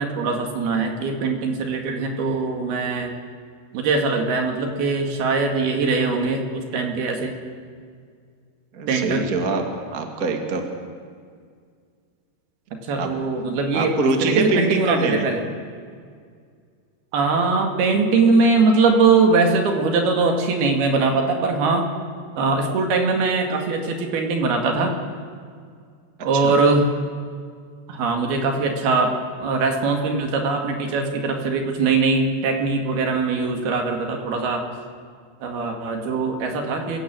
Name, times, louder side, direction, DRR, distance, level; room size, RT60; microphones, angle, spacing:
voice 1, 0.0-3.1 3.7-7.4 8.9-9.2 12.9-14.0 14.2-15.4 17.1-21.9 22.3-24.9 26.2-26.9 27.9-34.6 35.4-37.0, right 4 dB, 65° right, 3 dB, 3.9 m, -21 dB
voice 2, 8.7-10.7 12.9-13.1 13.7-15.2 26.3-26.5, right 3 dB, 35° right, 4 dB, 1.4 m, -24 dB
28.0 x 17.0 x 7.8 m, 2.1 s
omnidirectional pair, 5.0 m